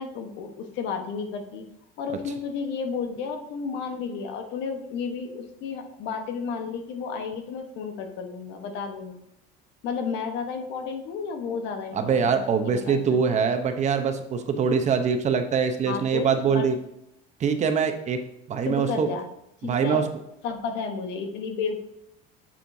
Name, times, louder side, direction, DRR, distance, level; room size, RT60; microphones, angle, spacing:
voice 1, 0.0-1.6 2.0-9.2 9.8-13.4 15.9-16.7 18.6-19.3 19.6-20.0 20.4-21.8, left 5 dB, 60° left, 5 dB, 1.2 m, -32 dB
voice 2, 11.9-16.7 17.4-18.2 18.5-19.1 19.6-20.0, right 6 dB, 35° right, 7 dB, 0.8 m, -23 dB
7.4 x 7.1 x 2.7 m, 0.82 s
cardioid pair, 125°, 21 cm